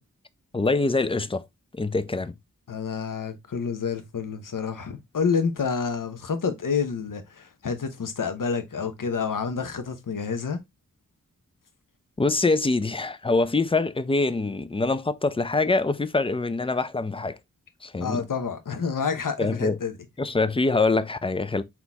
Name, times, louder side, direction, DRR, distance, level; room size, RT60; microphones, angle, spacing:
voice 1, 0.5-1.4 1.7-2.3 12.2-17.4 17.8-18.3 19.4-19.8 20.2-21.6, left 3 dB, 15° left, 0.4 m, -24 dB
voice 2, 2.7-10.6 18.0-19.9, left 5 dB, 70° left, 0.8 m, -28 dB
4.1 x 2.9 x 3.4 m
wide cardioid pair, 55°, 34 cm